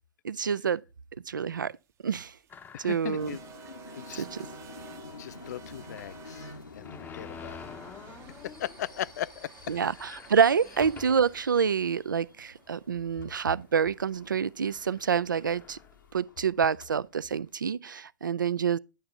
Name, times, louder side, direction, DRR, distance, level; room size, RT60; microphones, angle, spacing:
voice 1, 0.2-0.8 1.3-1.7 2.0-2.4 2.8-3.4 4.2-4.4 9.7-15.8 16.1-18.8, right 7 dB, 80° right, 0.4 m, -27 dB
sound 1, 1.9-14.1, right 8 dB, 25° right, 0.7 m, -53 dB
sound 2, 2.5-3.4 3.9-4.0 4.3-4.4 5.9-8.8 9.2-9.3 9.6-11.5 12.1-12.2 13.1-13.3 14.2-14.3 14.6-16.2, left 6 dB, 20° left, 0.6 m, -47 dB
voice 2, 2.7-3.4 4.0-4.2 5.2-7.7 8.4-9.5, left 12 dB, 60° left, 0.4 m, -38 dB
sound 3, 3.0-17.5, left 3 dB, 85° left, 1.0 m, -50 dB
10.5 x 6.8 x 3.6 m
figure-of-eight pair, 100°, 10 cm